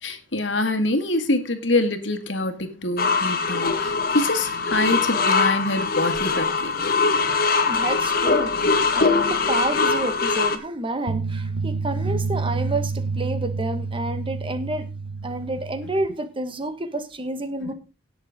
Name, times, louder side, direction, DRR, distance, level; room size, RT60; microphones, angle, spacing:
voice 1, 0.0-7.0, left 2 dB, 75° left, 2.1 m, -25 dB
sound 1, 3.0-10.6, left 4 dB, 55° left, 1.7 m, -22 dB
voice 2, 7.7-14.9 15.2-17.7, right 2 dB, 30° right, 1.6 m, -29 dB
sound 2, 11.1-16.1, right 4 dB, 70° right, 0.8 m, -28 dB
18.0 x 7.0 x 3.8 m
head